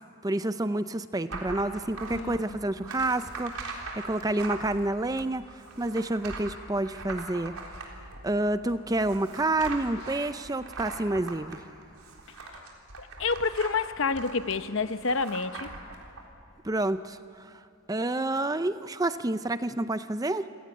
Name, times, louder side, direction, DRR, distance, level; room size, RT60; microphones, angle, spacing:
voice 1, 0.2-5.4 5.8-7.6 8.2-11.6 16.6-17.6 17.9-20.5, right 2 dB, 15° right, 12 dB, 0.5 m, -29 dB
sound 1, 1.3-16.2, right 3 dB, 75° right, 3.7 m, -41 dB
voice 2, 2.1-2.6 2.8-3.0 13.0-15.7, left 4 dB, 60° left, 11 dB, 0.9 m, -29 dB
27.5 x 17.0 x 8.5 m, 2.7 s
head